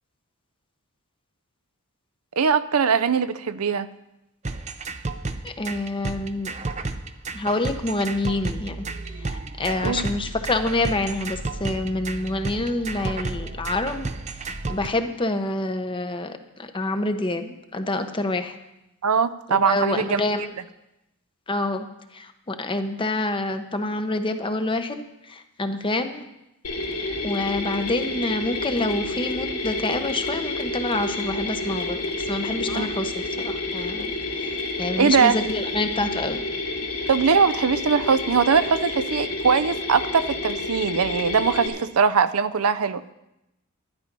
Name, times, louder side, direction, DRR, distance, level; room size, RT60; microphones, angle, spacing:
voice 1, 2.4-3.9 9.8-10.1 19.0-20.2 32.7-32.9 35.0-35.4 37.1-43.0, right 6 dB, 75° right, 14 dB, 0.6 m, -21 dB
sound 1, 4.4-14.9, right 3 dB, 30° right, 0.6 m, -32 dB
voice 2, 5.4-6.5 7.3-8.8 9.2-14.1 14.4-18.6 19.5-20.5 21.5-21.9 22.1-26.3 27.2-36.4, left 2 dB, 20° left, 8 dB, 0.8 m, -27 dB
Mechanisms, 26.6-41.7, left 2 dB, 80° left, 2.5 m, -29 dB
11.5 x 11.0 x 5.3 m, 0.90 s
head